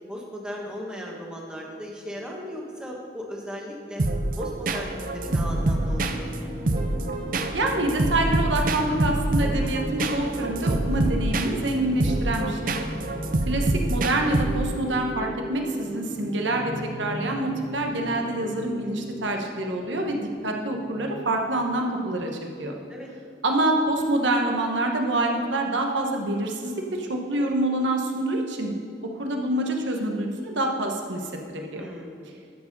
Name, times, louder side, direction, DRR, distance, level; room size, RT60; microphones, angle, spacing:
voice 1, 0.0-4.0 4.4-6.3 12.9-13.2 22.9-23.1 31.7-32.4, equal, 5° right, -2 dB, 1.3 m, -37 dB
sound 1, 4.0-14.9, right 2 dB, 45° right, 0.6 m, -26 dB
sound 2, 5.2-22.2, equal, 25° right, 2.1 m, -38 dB
voice 2, 7.5-12.7 13.5-22.3 22.6-22.8 23.4-28.7 29.2-31.9, right 1 dB, 85° right, 2 dB, 1.2 m, -26 dB
13.0 x 4.8 x 5.4 m, 2.4 s
head